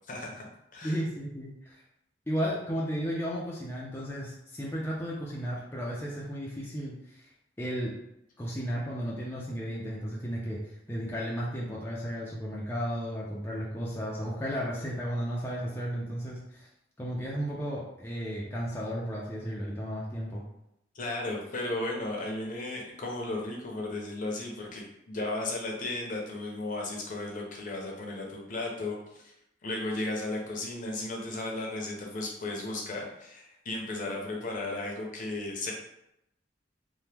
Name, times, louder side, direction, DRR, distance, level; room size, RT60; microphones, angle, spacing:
voice 1, 0.1-0.4 0.7-1.0 20.9-29.3 29.6-35.7, left 2 dB, 45° left, -1 dB, 0.7 m, -35 dB
voice 2, 0.8-1.8 2.3-7.3 7.6-8.0 8.4-16.7 17.0-20.4, equal, 15° left, -6 dB, 0.4 m, -34 dB
2.9 x 2.1 x 3.3 m, 0.82 s
head